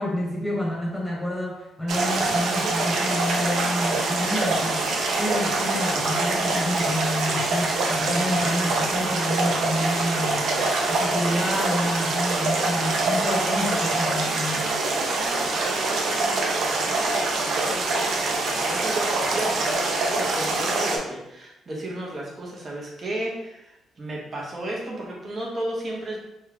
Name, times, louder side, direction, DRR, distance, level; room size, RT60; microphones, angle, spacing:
voice 1, 0.0-10.6 10.9-14.8, left 1 dB, 5° left, -3 dB, 1.2 m, -29 dB
sound 1, 1.9-21.0, right 2 dB, 65° right, 0.6 m, -24 dB
voice 2, 14.8-26.2, right 1 dB, 35° right, -3 dB, 1.0 m, -34 dB
3.0 x 2.4 x 3.4 m, 0.88 s
cardioid pair, 90°, 0 cm